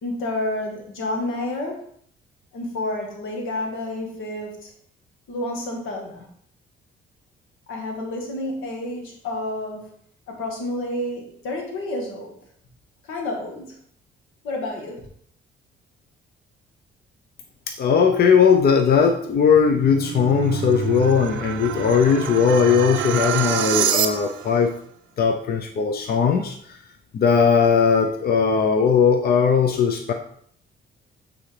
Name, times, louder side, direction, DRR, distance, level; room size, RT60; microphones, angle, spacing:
voice 1, 0.0-1.8 2.5-4.7 5.3-6.3 7.7-9.9 10.3-12.4 13.1-13.8 14.4-15.1, left 1 dB, 85° left, 1 dB, 1.7 m, -29 dB
voice 2, 17.7-24.7 25.2-26.8 27.1-30.1, left 6 dB, 50° left, 4 dB, 0.7 m, -18 dB
sound 1, 19.4-24.6, right 9 dB, 80° right, 0.6 m, -27 dB
8.3 x 4.0 x 3.4 m, 0.62 s
cardioid pair, 90°, 20 cm